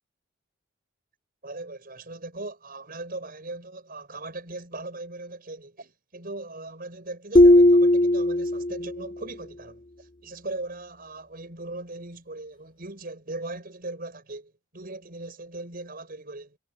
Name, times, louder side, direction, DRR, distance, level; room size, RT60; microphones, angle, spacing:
voice 1, 1.4-16.6, right 2 dB, 50° right, 5.5 m, -39 dB
sound 1, 7.4-9.1, left 1 dB, 25° left, 0.7 m, -17 dB
head